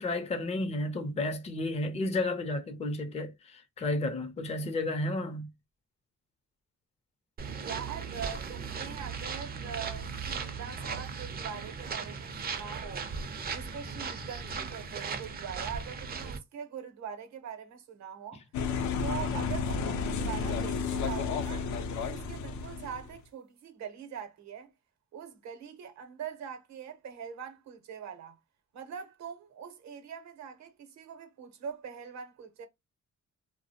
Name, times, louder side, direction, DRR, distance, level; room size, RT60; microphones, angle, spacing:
voice 1, 0.0-5.5, left 2 dB, 20° left, 0.5 m, -32 dB
sound 1, 7.4-16.4, right 5 dB, 30° right, 0.5 m, -37 dB
voice 2, 7.6-13.1 13.5-18.4 19.0-21.7 22.1-24.7 25.1-28.4 28.7-32.7, right 7 dB, 65° right, 0.7 m, -42 dB
sound 2, 18.5-23.2, left 5 dB, 75° left, 0.5 m, -32 dB
2.3 x 2.0 x 2.7 m
cardioid pair, 90°, 30 cm